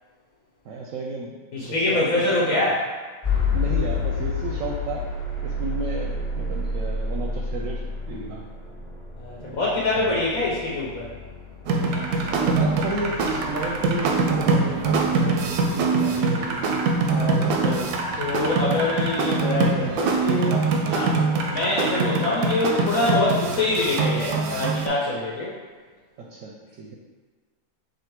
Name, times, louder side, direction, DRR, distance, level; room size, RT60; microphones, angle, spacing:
voice 1, 0.6-2.6 3.5-5.1 5.4-8.4 9.4-10.2 12.3-16.6 26.2-27.0, right 3 dB, 70° right, 0 dB, 0.9 m, -33 dB
voice 2, 1.5-2.8 9.2-11.1 15.1-15.3 17.1-17.9 18.2-20.6 20.9-21.1 21.5-25.5, left 2 dB, 70° left, -6 dB, 1.2 m, -25 dB
sound 1, 3.2-19.2, left 3 dB, 30° left, 1.1 m, -31 dB
sound 2, 11.7-24.9, right 3 dB, 90° right, 1.1 m, -23 dB
4.2 x 2.7 x 4.5 m, 1.5 s
omnidirectional pair, 1.6 m